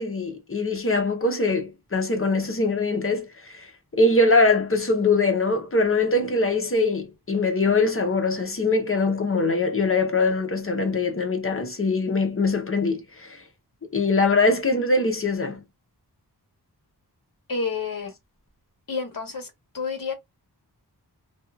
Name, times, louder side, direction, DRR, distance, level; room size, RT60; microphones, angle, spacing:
voice 1, 0.0-3.7 3.9-13.4 13.9-15.6, left 3 dB, 35° left, 0.8 m, -22 dB
voice 2, 17.5-18.1 18.9-20.1, left 4 dB, 55° left, 1.1 m, -30 dB
2.6 x 2.4 x 2.2 m
wide cardioid pair, 110°, 40 cm